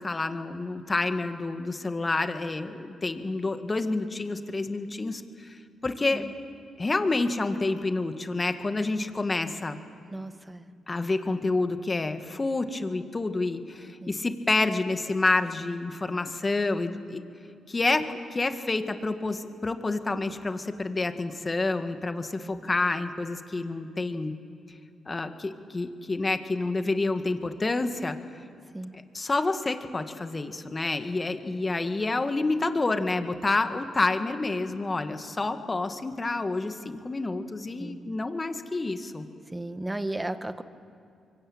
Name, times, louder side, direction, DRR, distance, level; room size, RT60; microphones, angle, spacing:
voice 1, 0.0-6.3 6.8-9.8 10.9-17.2 17.7-24.3 25.1-28.2 28.9-39.3, left 3 dB, 30° left, 8 dB, 2.0 m, -28 dB
voice 2, 10.1-10.7 11.3-11.4 14.0-14.1 22.4-22.6 28.7-28.9 30.8-31.0 37.8-38.0 39.5-40.6, right 1 dB, 15° right, 10 dB, 1.6 m, -35 dB
25.0 x 23.5 x 8.8 m, 2.4 s
supercardioid pair, 50°, 0 cm